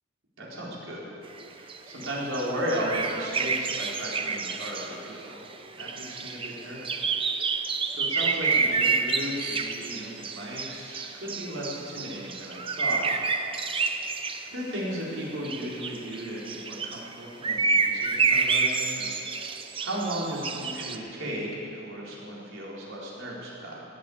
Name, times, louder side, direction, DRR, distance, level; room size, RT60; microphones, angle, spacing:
voice 1, 0.4-1.1 1.5-5.4 5.7-7.4 7.9-13.2 14.5-19.5 19.8-23.8, equal, 90° right, -5 dB, 4.3 m, -35 dB
sound 1, 1.2-14.5 15.4-17.1 17.4-21.0, right 4 dB, 25° right, 0.7 m, -29 dB
17.5 x 8.5 x 8.6 m, 2.8 s
head